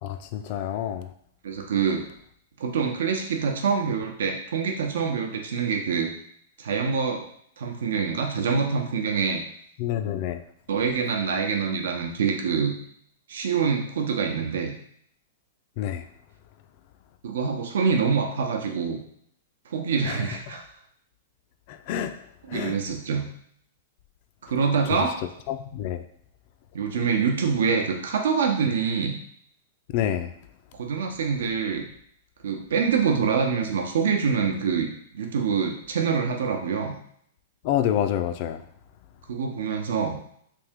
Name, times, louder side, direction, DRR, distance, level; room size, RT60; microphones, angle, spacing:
voice 1, 0.0-1.1 9.8-10.4 15.8-16.0 20.1-20.2 21.7-22.1 22.5-22.8 25.5-26.0 29.9-30.3 37.6-38.6, left 10 dB, 40° left, 9 dB, 0.3 m, -27 dB
voice 2, 1.4-2.0 2.6-6.1 6.6-7.2 7.6-9.4 10.7-12.7 13.3-14.7 17.2-19.0 19.7-20.6 22.5-23.2 24.4-25.1 26.7-29.2 30.8-31.9 32.4-34.9 35.1-37.0 39.3-40.2, right 6 dB, 80° right, 3 dB, 0.7 m, -25 dB
3.4 x 2.7 x 3.6 m, 0.67 s
hypercardioid pair, 160°, 0 cm